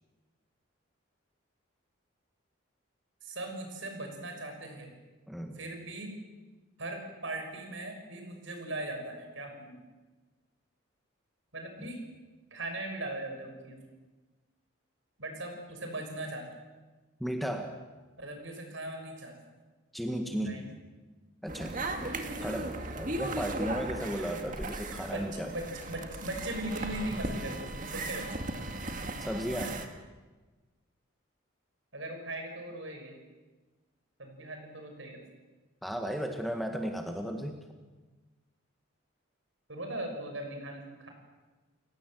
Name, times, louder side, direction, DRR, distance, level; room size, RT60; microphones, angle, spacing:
voice 1, 3.2-4.9 5.5-6.1 6.8-9.8 11.5-12.0 12.5-13.8 15.2-16.4 18.2-19.3 20.3-20.7 22.2-22.5 25.0-28.4 31.9-33.2 34.2-35.2 39.7-41.1, right 1 dB, 70° right, 4 dB, 6.2 m, -39 dB
voice 2, 5.3-5.6 11.8-11.9 17.2-17.7 19.9-20.6 21.4-22.1 22.4-25.5 29.2-29.8 35.8-37.6, equal, ahead, 4 dB, 1.7 m, -35 dB
sound 1, 21.5-29.9, right 2 dB, 40° right, 2.1 m, -37 dB
29.5 x 17.0 x 7.8 m, 1.2 s
head